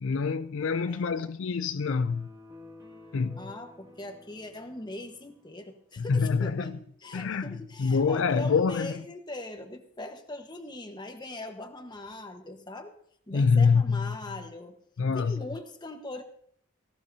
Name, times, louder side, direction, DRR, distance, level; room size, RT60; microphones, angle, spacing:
voice 1, 0.0-2.3 3.1-3.4 6.0-6.7 7.1-7.5 7.8-8.9 13.3-14.1 15.0-15.4, left 5 dB, 65° left, 0.4 m, -25 dB
voice 2, 0.9-1.3 3.4-12.9 13.3-14.8 15.1-16.2, left 2 dB, 20° left, 1.2 m, -41 dB
sound 1, 2.0-5.5, left 2 dB, 20° right, 2.0 m, -51 dB
17.5 x 17.0 x 2.8 m
head